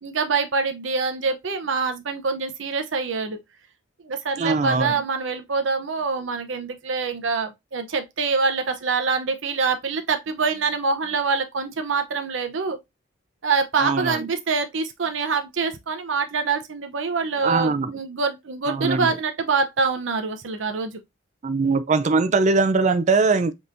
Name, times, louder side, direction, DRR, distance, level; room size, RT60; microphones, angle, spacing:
voice 1, 0.0-3.4 4.0-12.8 13.4-21.0, right 4 dB, 75° right, 0.7 m, -25 dB
voice 2, 4.4-4.9 13.8-14.3 17.4-17.9 18.7-19.1 21.4-23.5, right 4 dB, 35° right, 0.4 m, -21 dB
5.3 x 3.0 x 2.5 m
head